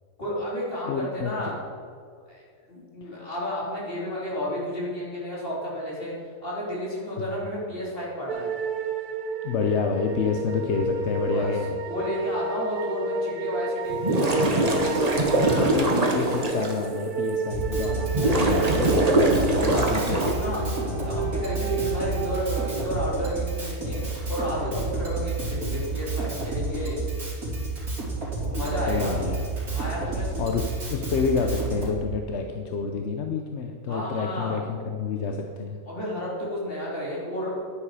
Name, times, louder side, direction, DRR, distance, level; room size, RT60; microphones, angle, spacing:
voice 1, 0.2-1.5 2.3-2.4 2.7-6.1 6.4-8.5 11.3-11.6 11.9-15.7 18.1-18.6 19.7-27.0 28.4-29.2 29.7-30.4 33.9-34.6 35.9-37.6, equal, 35° left, -6 dB, 3.5 m, -32 dB
voice 2, 0.9-1.3 3.0-3.1 7.2-7.3 9.4-11.8 15.6-20.2 20.5-21.2 28.5-29.4 30.1-35.8, left 5 dB, 55° left, 4 dB, 0.9 m, -29 dB
sound 1, 8.3-23.4, right 4 dB, 75° right, 1.2 m, -32 dB
sound 2, 13.9-16.7 17.3-17.4 18.1-20.3, right 2 dB, 25° right, 1.2 m, -23 dB
Drum kit, 17.5-31.9, right 3 dB, 60° right, 3.7 m, -30 dB
10.5 x 9.7 x 4.9 m, 2.2 s
omnidirectional pair, 1.6 m